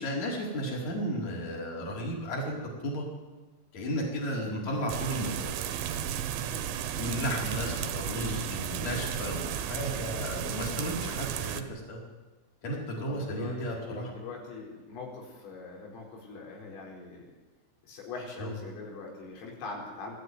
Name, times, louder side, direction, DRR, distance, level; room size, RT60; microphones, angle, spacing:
voice 1, 0.0-2.6 2.8-3.0 3.7-5.6 6.5-6.6 7.0-12.0 12.6-14.1 18.4-18.6, equal, 35° left, -2 dB, 5.6 m, -34 dB
voice 2, 4.5-4.9 7.6-8.1 13.1-17.2 17.8-20.2, left 3 dB, 85° left, -1 dB, 7.2 m, -42 dB
sound 1, 4.9-11.6, right 9 dB, 75° right, 3.5 m, -34 dB
22.5 x 13.5 x 9.6 m, 1.2 s
omnidirectional pair, 5.7 m